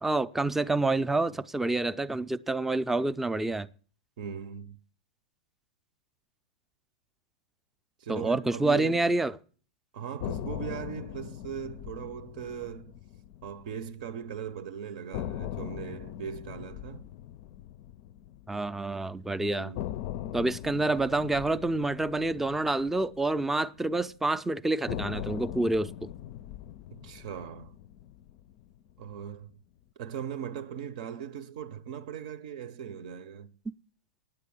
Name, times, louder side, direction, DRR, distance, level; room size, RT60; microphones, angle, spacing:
voice 1, 0.0-3.7 8.1-9.3 18.5-19.7 20.3-25.9, right 2 dB, 5° right, 0.5 m, -28 dB
voice 2, 4.2-4.8 8.0-9.1 9.9-13.0 13.4-17.1 19.4-19.8 26.9-27.8 29.0-29.6 30.0-33.5, right 8 dB, 60° right, 0.7 m, -39 dB
sound 1, 10.2-14.3 14.6-14.7 15.1-19.2 19.8-24.1 24.9-29.2, left 12 dB, 50° left, 0.5 m, -40 dB
9.5 x 8.2 x 8.5 m
hypercardioid pair, 125°, 5 cm